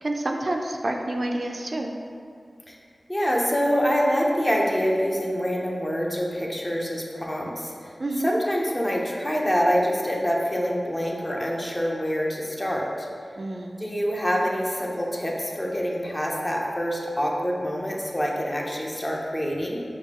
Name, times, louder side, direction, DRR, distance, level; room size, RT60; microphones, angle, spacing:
voice 1, 0.0-1.9 8.0-8.3 13.4-13.8, right 1 dB, 55° right, 2 dB, 0.3 m, -28 dB
voice 2, 3.1-7.9 8.2-13.1 13.8-19.8, equal, 20° left, -2 dB, 0.6 m, -26 dB
5.7 x 2.2 x 2.9 m, 2.3 s
wide cardioid pair, 50°, 0 cm